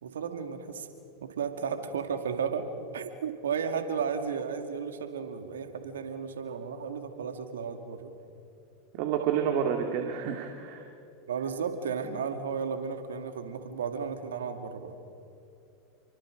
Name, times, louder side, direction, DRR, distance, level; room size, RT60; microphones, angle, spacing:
voice 1, 0.0-0.9 1.2-2.6 2.9-8.1 11.3-14.9, right 6 dB, 80° right, 7 dB, 2.3 m, -34 dB
voice 2, 8.9-10.8, right 8 dB, 60° right, 4 dB, 2.2 m, -29 dB
29.5 x 24.0 x 5.2 m, 2.7 s
hypercardioid pair, 90°, 0 cm